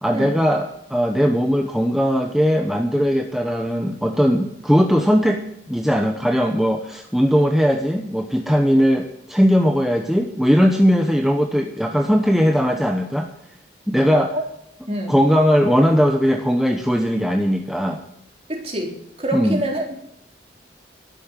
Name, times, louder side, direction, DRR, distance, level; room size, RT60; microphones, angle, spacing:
voice 1, 0.0-5.4 5.7-13.3 13.9-14.4 15.1-18.0 19.3-19.6, equal, ahead, 3 dB, 0.9 m, -19 dB
voice 2, 18.5-18.9 19.2-20.0, right 1 dB, 35° right, 0 dB, 3.9 m, -26 dB
13.0 x 10.5 x 7.4 m, 0.73 s
head